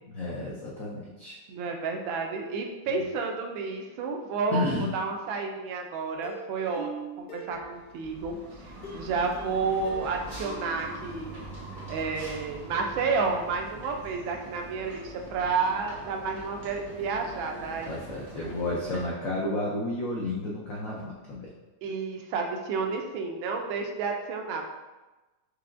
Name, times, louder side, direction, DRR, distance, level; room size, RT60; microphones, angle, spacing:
voice 1, 0.0-1.4 4.5-4.9 17.9-21.5, left 2 dB, 80° left, -4 dB, 0.7 m, -31 dB
voice 2, 1.5-8.4 8.7-11.3 11.9-18.0 21.8-24.7, right 4 dB, 80° right, 3 dB, 1.3 m, -31 dB
Plucked string instrument, 6.2-8.2 8.8-11.6 11.9-12.0 12.4-12.5, right 3 dB, 55° left, 1.1 m, -43 dB
sound 1, 7.5-19.0, right 1 dB, 60° right, 0.5 m, -43 dB
4.7 x 2.8 x 2.5 m, 1.1 s
omnidirectional pair, 2.2 m